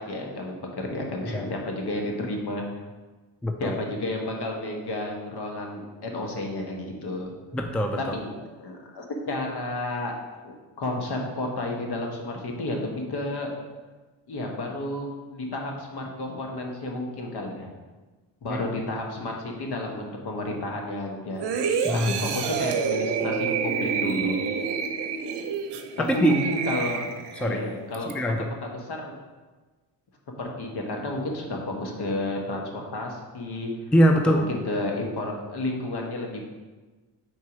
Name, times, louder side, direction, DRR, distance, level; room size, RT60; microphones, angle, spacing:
voice 1, 0.0-2.6 3.6-7.3 8.0-10.1 10.4-13.5 14.3-17.7 18.4-21.4 22.1-24.4 26.0-27.1 27.4-28.1 28.6-29.1 30.4-33.7 34.3-36.4, left 1 dB, 60° left, 1 dB, 1.3 m, -31 dB
voice 2, 3.4-3.8 7.5-8.0 18.5-18.6 21.8-22.1 26.1-26.3 27.4-27.6 28.1-28.4 33.9-34.4, equal, 5° left, 5 dB, 0.4 m, -22 dB
sound 1, 21.4-27.5 27.9-28.1, right 6 dB, 65° right, 0.7 m, -28 dB
4.6 x 4.1 x 4.9 m, 1.3 s
cardioid pair, 75°, 45 cm